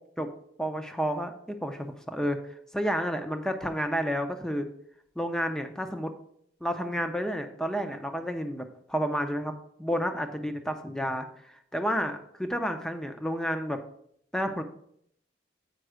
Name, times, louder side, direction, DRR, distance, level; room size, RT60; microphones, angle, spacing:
voice 1, 0.6-4.7 5.2-6.1 6.6-9.5 9.8-13.8 14.3-14.6, equal, 5° left, 6 dB, 0.7 m, -31 dB
7.9 x 5.3 x 4.9 m, 0.68 s
head